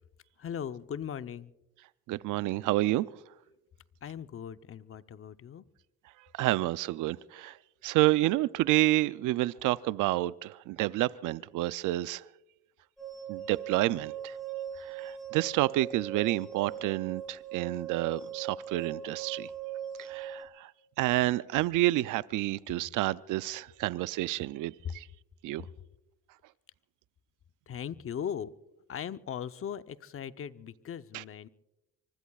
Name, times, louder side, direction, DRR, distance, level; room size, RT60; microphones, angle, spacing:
voice 1, 0.4-1.5 4.0-5.7 24.8-24.9 27.7-28.5 28.9-31.5, left 8 dB, 45° left, 0.7 m, -38 dB
voice 2, 2.1-3.1 6.3-7.6 7.8-12.2 13.3-14.4 14.8-19.5 20.0-20.7 21.0-25.1 25.4-25.7 31.1-31.2, right 17 dB, 85° right, 0.5 m, -29 dB
sound 1, 13.0-20.4, right 9 dB, ahead, 5.4 m, -40 dB
25.0 x 24.5 x 2.4 m
cardioid pair, 90°, 30 cm